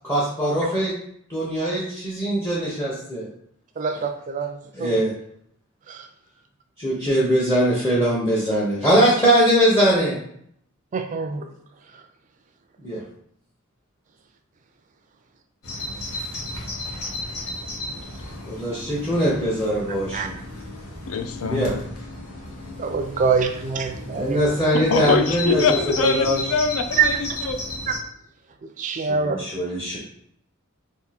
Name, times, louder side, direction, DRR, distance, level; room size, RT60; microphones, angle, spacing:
voice 1, 0.0-0.9 1.3-3.3 4.7-5.1 6.8-10.2 12.8-13.0 18.4-20.3 21.4-21.8 24.1-26.4 28.9-30.0, equal, 15° left, -7 dB, 0.7 m, -21 dB
voice 2, 3.8-5.0 5.9-6.1 10.9-11.5 20.1-20.3 22.8-24.4 27.0-27.1 27.9-28.0 28.8-29.4, right 5 dB, 35° right, 6 dB, 0.3 m, -24 dB
Bird vocalization bird call bird song, 15.6-28.0, left 1 dB, 90° left, 1.0 m, -34 dB
voice 3, 21.1-21.7 24.9-27.6, left 4 dB, 70° left, 6 dB, 0.4 m, -23 dB
2.7 x 2.5 x 4.1 m, 0.68 s
head